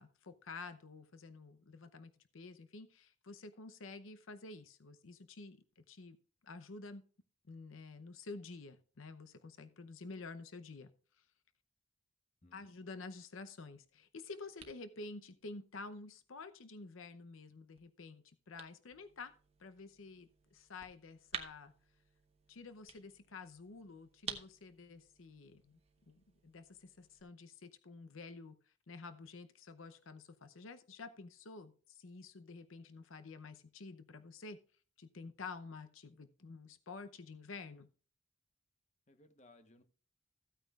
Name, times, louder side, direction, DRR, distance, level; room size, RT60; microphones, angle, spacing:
voice 1, 0.0-6.2 6.4-7.0 7.5-10.9 11.2-11.3 12.5-19.3 19.6-21.7 22.5-25.8 26.1-34.6 35.0-37.9, left 3 dB, 85° left, 10 dB, 0.7 m, -50 dB
voice 2, 12.4-12.7 39.1-39.8, left 2 dB, 35° left, 9 dB, 1.0 m, -63 dB
sound 1, 13.7-27.2, right 6 dB, 30° right, 1.1 m, -53 dB
15.0 x 9.1 x 2.4 m, 0.39 s
head